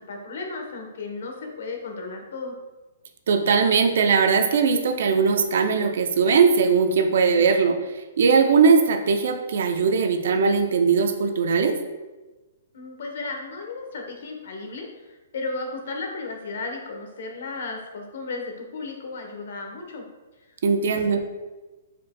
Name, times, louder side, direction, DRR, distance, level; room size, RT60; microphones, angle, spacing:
voice 1, 0.0-2.6 12.7-20.0 20.4-20.5 21.0-21.2, left 3 dB, 65° left, 2 dB, 1.0 m, -34 dB
voice 2, 3.3-7.8 8.2-11.8 20.6-21.2, right 5 dB, 60° right, 6 dB, 0.5 m, -20 dB
5.0 x 4.3 x 2.2 m, 1.2 s
hypercardioid pair, 160°, 0 cm